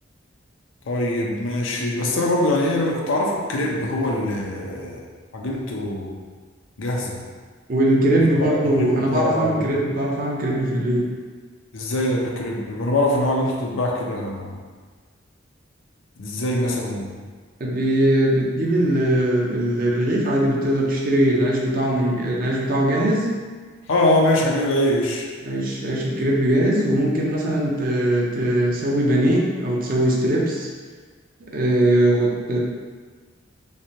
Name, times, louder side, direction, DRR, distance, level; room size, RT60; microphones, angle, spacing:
voice 1, 0.9-5.1 5.3-6.1 6.8-7.2 8.4-9.7 11.7-14.5 16.2-17.1 23.9-25.3, left 1 dB, 80° left, -1 dB, 0.6 m, -23 dB
voice 2, 7.7-11.0 17.6-23.3 25.4-30.7 31.5-32.6, right 1 dB, 45° right, -2 dB, 0.6 m, -20 dB
3.3 x 3.2 x 2.8 m, 1.5 s
head